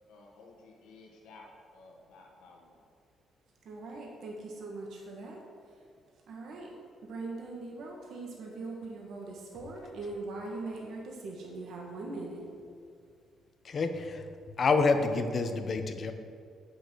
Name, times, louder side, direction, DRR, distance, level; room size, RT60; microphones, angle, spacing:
voice 1, 0.1-2.8, left 3 dB, 90° left, -1 dB, 1.4 m, -54 dB
voice 2, 3.6-5.9 6.3-6.7 7.0-12.5, right 2 dB, 70° right, -1 dB, 1.5 m, -41 dB
voice 3, 13.6-14.3 14.6-16.1, left 4 dB, 45° left, 7 dB, 0.9 m, -28 dB
8.1 x 6.7 x 6.2 m, 2.2 s
cardioid pair, 90°, 0 cm